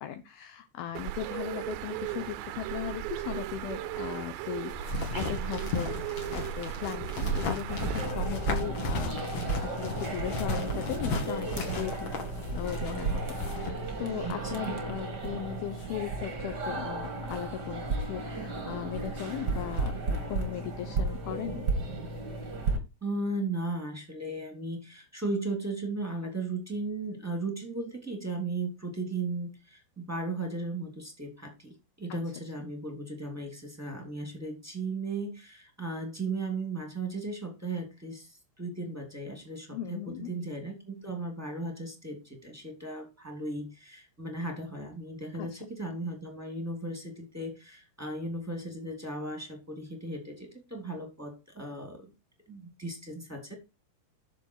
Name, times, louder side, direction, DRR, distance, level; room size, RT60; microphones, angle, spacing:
voice 1, 0.0-9.2 9.6-12.2 12.5-21.7 32.1-32.2 39.7-40.3 45.4-45.7, left 10 dB, 80° left, 8 dB, 2.2 m, -38 dB
Bird, 1.0-8.1, right 13 dB, 80° right, 3.1 m, -37 dB
sound 1, 4.7-13.7, left 2 dB, 45° left, 3.1 m, -35 dB
sound 2, 7.7-22.8, right 3 dB, 35° right, 1.7 m, -34 dB
voice 2, 14.2-14.8 23.0-52.1 52.5-53.5, right 2 dB, 5° right, 4 dB, 1.9 m, -36 dB
11.5 x 6.9 x 4.7 m, 0.25 s
omnidirectional pair, 5.4 m